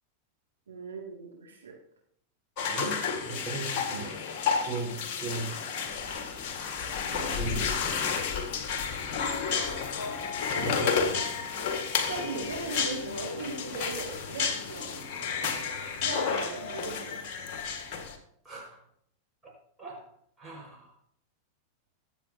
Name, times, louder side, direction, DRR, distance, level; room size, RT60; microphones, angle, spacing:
voice 1, 0.7-1.7 12.1-15.1 16.0-17.2, right 4 dB, 70° right, -2 dB, 2.3 m, -38 dB
sound 1, 2.6-18.2, left 6 dB, 45° left, 1.8 m, -31 dB
voice 2, 2.6-4.2 4.7-5.0 5.2-5.5 7.1-8.0 10.5-11.4 18.5-18.8 19.4-19.5 19.8-20.0 20.4-20.9, right 3 dB, 10° right, -3 dB, 5.6 m, -37 dB
sound 2, 5.9-11.3, left 7 dB, 25° left, 3.6 m, -42 dB
22.5 x 7.6 x 2.9 m, 0.70 s
figure-of-eight pair, 90°, 0 cm